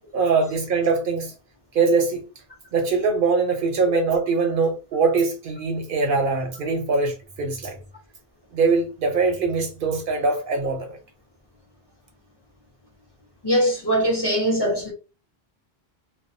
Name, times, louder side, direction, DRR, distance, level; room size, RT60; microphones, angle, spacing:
voice 1, 0.1-1.3 1.7-2.3 2.7-7.7 8.5-11.0, right 4 dB, 65° right, 0.7 m, -22 dB
voice 2, 13.4-14.9, equal, 25° left, 0.7 m, -21 dB
2.3 x 2.2 x 2.5 m
omnidirectional pair, 1.0 m